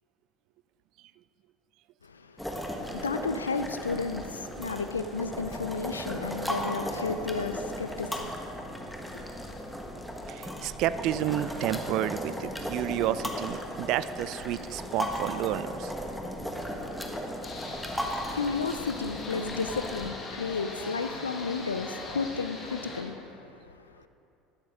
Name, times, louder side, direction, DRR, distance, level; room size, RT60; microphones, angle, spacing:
voice 1, 2.0-9.8 17.5-17.8 18.3-24.1, left 4 dB, 90° left, 9 dB, 0.5 m, -33 dB
sound 1, 2.4-20.1, equal, 5° left, 1.4 m, -36 dB
voice 2, 10.3-15.9, right 12 dB, 60° right, 15 dB, 0.3 m, -30 dB
sound 2, 17.4-23.0, left 3 dB, 40° left, 1.8 m, -40 dB
12.0 x 10.0 x 3.6 m, 2.7 s
hypercardioid pair, 65°, 0 cm